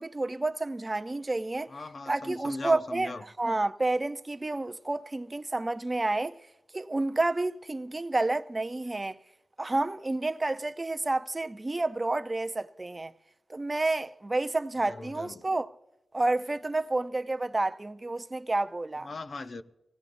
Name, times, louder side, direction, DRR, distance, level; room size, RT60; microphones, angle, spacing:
voice 1, 0.0-1.7 2.1-6.4 6.7-9.2 9.6-13.1 13.5-15.7 16.1-19.1, right 2 dB, 25° right, 0.5 m, -30 dB
voice 2, 1.7-3.2 14.9-15.4 19.0-19.6, left 3 dB, 50° left, 0.7 m, -39 dB
24.5 x 17.0 x 2.6 m
wide cardioid pair, 115°, 0 cm